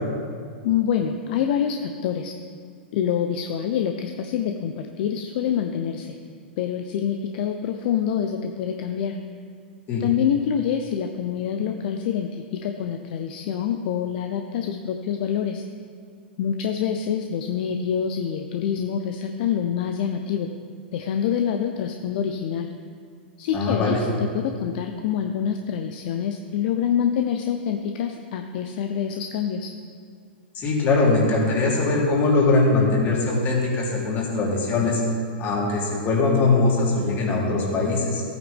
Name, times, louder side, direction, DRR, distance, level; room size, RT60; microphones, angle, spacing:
voice 1, 0.6-2.3 2.9-6.2 6.6-9.2 10.0-15.6 16.4-20.5 20.9-22.7 23.4-29.7, left 8 dB, 55° left, 5 dB, 0.8 m, -26 dB
voice 2, 23.5-24.0 30.5-35.0 35.4-38.2, left 3 dB, 35° left, -3 dB, 3.5 m, -21 dB
16.0 x 9.1 x 3.6 m, 2.1 s
hypercardioid pair, 105°, 6 cm